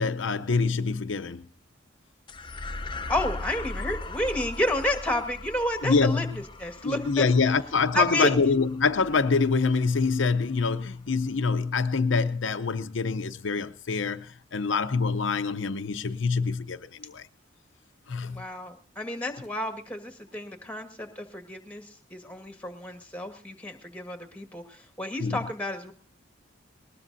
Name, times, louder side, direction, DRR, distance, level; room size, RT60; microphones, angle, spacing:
voice 1, 0.0-1.4 5.8-6.3 6.8-17.3 18.1-18.4 25.2-25.4, left 4 dB, 80° left, 0.7 m, -25 dB
sound 1, 2.3-10.9, left 2 dB, 25° left, 0.7 m, -39 dB
voice 2, 3.1-6.3 6.6-7.2 7.9-8.3 18.2-25.9, left 1 dB, 5° left, 1.7 m, -31 dB
20.0 x 20.0 x 2.7 m
head